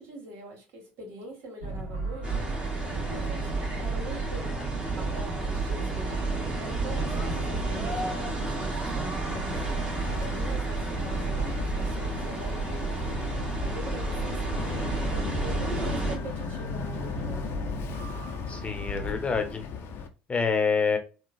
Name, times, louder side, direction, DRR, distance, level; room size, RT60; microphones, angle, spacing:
voice 1, 0.0-2.4 2.8-4.6 4.9-14.7 15.1-17.4, right 2 dB, 60° right, 1.6 m, -43 dB
sound 1, 1.6-19.2, right 1 dB, 75° right, 1.2 m, -38 dB
sound 2, 2.2-16.2, right 3 dB, 20° right, 1.6 m, -31 dB
Boat Water vehicle, 9.3-20.1, left 6 dB, 50° left, 0.6 m, -37 dB
voice 2, 18.5-19.6 20.3-21.0, left 5 dB, 25° left, 0.9 m, -26 dB
3.7 x 2.3 x 2.5 m
hypercardioid pair, 65°, 5 cm